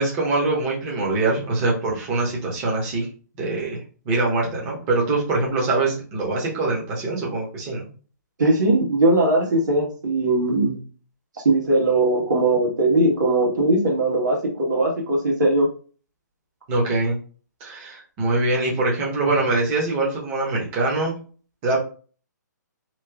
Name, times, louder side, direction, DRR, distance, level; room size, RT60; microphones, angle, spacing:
voice 1, 0.0-3.1 3.4-3.8 4.1-7.9 16.7-17.2 17.6-21.2 21.6-21.8, right 2 dB, 25° right, -3 dB, 0.9 m, -23 dB
voice 2, 8.4-10.8 11.4-15.7, right 2 dB, 75° right, -1 dB, 1.5 m, -19 dB
3.0 x 2.4 x 3.4 m, 0.39 s
hypercardioid pair, 160°, 10 cm